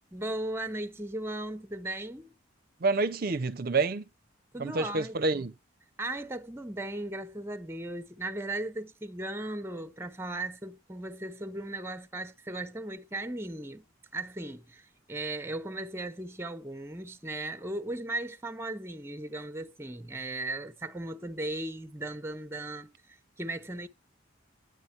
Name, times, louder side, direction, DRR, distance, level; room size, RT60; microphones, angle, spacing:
voice 1, 0.1-2.3 4.5-5.5 6.0-13.8 14.1-23.9, right 2 dB, 15° right, 0.7 m, -37 dB
voice 2, 2.8-4.0 4.6-5.5, right 3 dB, 50° right, 0.6 m, -28 dB
9.5 x 9.5 x 4.3 m
head